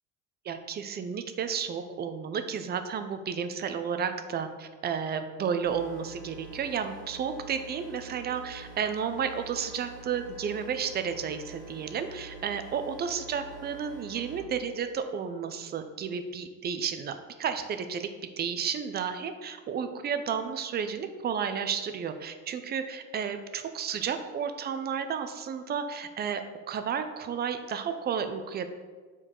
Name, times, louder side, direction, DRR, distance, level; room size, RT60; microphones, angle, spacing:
voice 1, 0.4-18.1 18.4-26.4 26.7-28.7, right 7 dB, 30° right, 9 dB, 0.5 m, -32 dB
sound 1, 5.6-14.4, right 2 dB, 5° left, 2.0 m, -47 dB
6.7 x 4.6 x 3.7 m, 1.4 s
cardioid pair, 130°, 34 cm